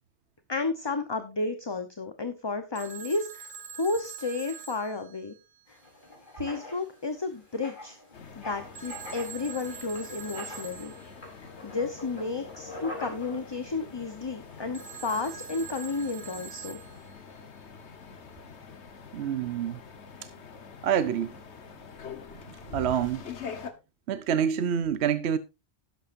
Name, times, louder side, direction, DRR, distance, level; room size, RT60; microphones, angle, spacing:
voice 1, 0.5-3.5 3.8-5.3 5.7-5.8 6.4-8.0 8.4-10.9 11.4-16.8, left 3 dB, 25° left, 0.9 m, -32 dB
Telephone, 2.7-5.8 8.7-11.3 14.7-17.4, right 7 dB, 45° right, 1.4 m, -44 dB
Writing, 5.7-16.1, left 2 dB, 45° left, 4.2 m, -46 dB
sound 1, 8.1-23.7, left 5 dB, 80° left, 1.5 m, -45 dB
voice 2, 19.1-19.8 20.8-21.3 22.7-23.2 24.1-25.4, right 8 dB, 75° right, 1.0 m, -27 dB
12.0 x 11.5 x 2.6 m
omnidirectional pair, 1.1 m